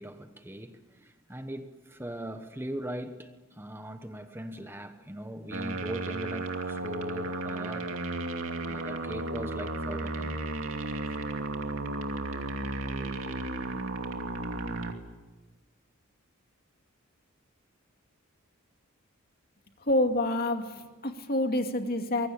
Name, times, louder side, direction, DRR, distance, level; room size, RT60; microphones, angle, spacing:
voice 1, 0.0-7.9 8.5-10.4, equal, 10° right, 1.2 m, -40 dB
sound 1, 5.5-14.9, right 2 dB, 65° right, 2.7 m, -34 dB
voice 2, 19.8-22.3, left 1 dB, 45° left, 2.4 m, -28 dB
24.5 x 22.5 x 8.8 m
head